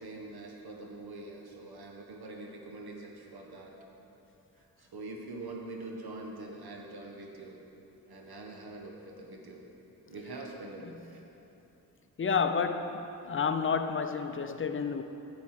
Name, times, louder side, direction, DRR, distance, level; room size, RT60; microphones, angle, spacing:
voice 1, 0.0-3.7 4.8-7.6 8.1-9.6 10.1-11.2, right 2 dB, 65° right, 1.4 m, -44 dB
voice 2, 12.2-15.0, left 5 dB, 30° left, 0.6 m, -30 dB
10.5 x 4.2 x 7.4 m
cardioid pair, 60°, 41 cm